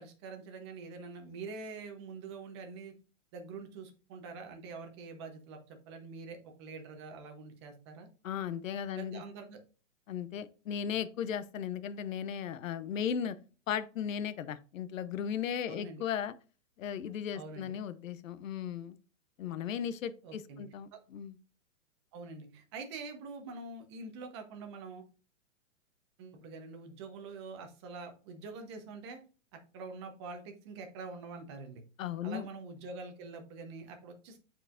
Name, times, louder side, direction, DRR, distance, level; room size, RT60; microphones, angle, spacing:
voice 1, 0.0-2.9 3.3-8.1 8.9-9.6 15.7-16.0 17.3-17.8 20.2-20.6 20.9-21.0 22.1-25.0 26.2-29.2 29.5-31.8 32.2-34.4, right 4 dB, 20° right, 0.8 m, -45 dB
voice 2, 8.2-9.2 10.1-13.4 13.7-16.3 16.8-19.0 19.4-21.4 32.0-32.5, left 8 dB, 85° left, 0.8 m, -36 dB
8.9 x 4.6 x 2.5 m
hypercardioid pair, 170°, 38 cm